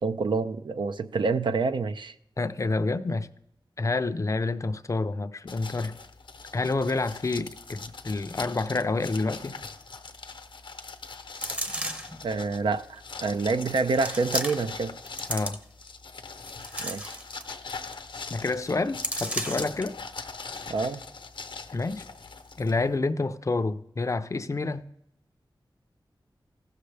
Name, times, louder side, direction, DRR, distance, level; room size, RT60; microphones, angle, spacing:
voice 1, 0.0-2.1 12.2-15.0 16.8-17.1 20.7-21.0, right 4 dB, 70° right, 0.5 m, -27 dB
voice 2, 2.4-3.3 3.8-6.0 6.5-9.6 15.3-15.6 18.3-19.9 21.7-22.0 22.6-24.9, left 3 dB, 40° left, 0.5 m, -28 dB
sound 1, 5.5-23.0, left 4 dB, 85° left, 0.8 m, -42 dB
sound 2, 11.3-12.2 13.0-13.1 13.9-14.8 15.1-15.9 16.4-17.6 17.9-18.0 18.3-18.5 19.0-19.8 20.3-20.4, right 1 dB, 15° right, 0.8 m, -34 dB
15.0 x 6.6 x 3.3 m
wide cardioid pair, 80°, 8 cm